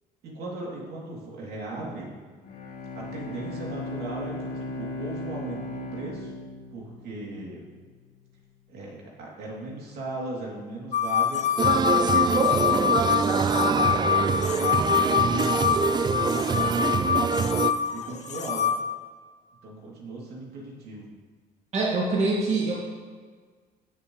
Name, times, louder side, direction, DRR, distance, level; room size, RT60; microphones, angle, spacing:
voice 1, 0.2-2.1 2.9-6.3 6.7-7.6 8.7-12.9 13.2-15.6 16.1-17.4 17.9-18.6 19.6-21.1, right 2 dB, 70° right, -3 dB, 3.0 m, -37 dB
Bowed string instrument, 2.4-7.6, left 2 dB, 60° left, 3.1 m, -37 dB
sound 1, 10.9-18.8, left 8 dB, 45° left, 0.8 m, -25 dB
sound 2, 11.6-17.7, right 6 dB, 25° right, 0.3 m, -25 dB
voice 2, 21.7-22.7, right 3 dB, 40° right, -4 dB, 2.0 m, -24 dB
16.0 x 6.8 x 3.2 m, 1.5 s
cardioid pair, 110°, 17 cm